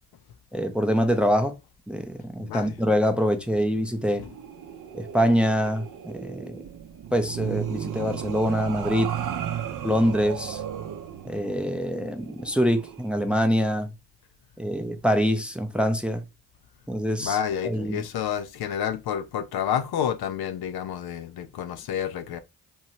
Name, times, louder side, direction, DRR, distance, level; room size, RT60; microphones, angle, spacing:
voice 1, 0.5-1.6 1.9-4.2 4.9-6.6 7.1-9.1 9.8-10.6 11.2-13.9 14.6-16.2 16.9-17.4 17.6-18.0, equal, 5° right, 0.5 m, -24 dB
voice 2, 2.4-2.8 4.2-4.3 17.2-22.4, left 9 dB, 65° left, 0.5 m, -29 dB
sound 1, 4.1-13.1, right 9 dB, 50° right, 0.6 m, -35 dB
2.8 x 2.2 x 2.9 m
supercardioid pair, 40°, 42 cm